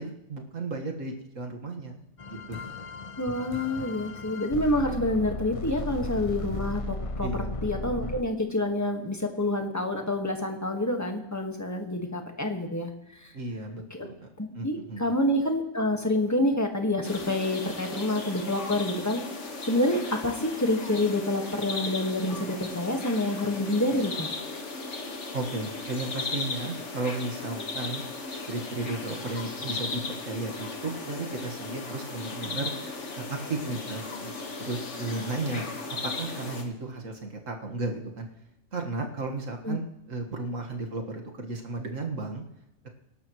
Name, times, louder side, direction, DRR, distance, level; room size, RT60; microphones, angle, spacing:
voice 1, 0.0-2.7 7.2-8.1 13.3-14.3 14.5-15.2 25.3-28.0 28.5-32.7 33.2-34.3 34.6-38.3 38.7-42.4, right 3 dB, 90° right, 2 dB, 2.0 m, -34 dB
sound 1, 2.2-8.2, left 2 dB, 40° left, 0.5 m, -35 dB
voice 2, 3.2-7.3 7.6-13.3 13.9-14.1 14.4-19.2 19.6-24.3 39.6-39.8, left 1 dB, 15° left, 3 dB, 1.6 m, -28 dB
sound 2, 17.0-36.6, left 3 dB, 65° left, 1.9 m, -36 dB
23.5 x 12.0 x 3.1 m, 0.91 s
omnidirectional pair, 1.3 m